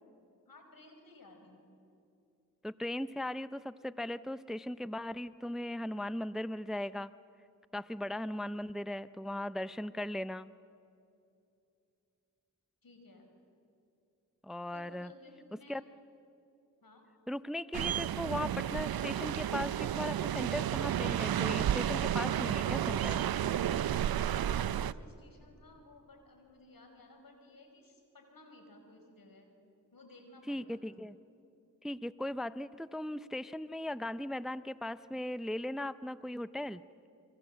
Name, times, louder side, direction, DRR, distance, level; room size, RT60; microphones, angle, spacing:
voice 1, 0.5-1.7 8.0-8.2 12.8-13.3 14.7-15.9 16.8-17.0 24.1-29.5 29.9-31.0, left 2 dB, 75° left, 4 dB, 5.3 m, -57 dB
voice 2, 2.6-7.1 7.7-10.5 14.4-15.1 15.7-15.8 17.3-23.2 30.5-31.2 31.8-36.8, left 1 dB, ahead, 15 dB, 0.6 m, -38 dB
sound 1, 17.7-24.9, right 10 dB, 85° right, 0.6 m, -32 dB
28.5 x 23.5 x 7.8 m, 2.6 s
cardioid pair, 50°, 35 cm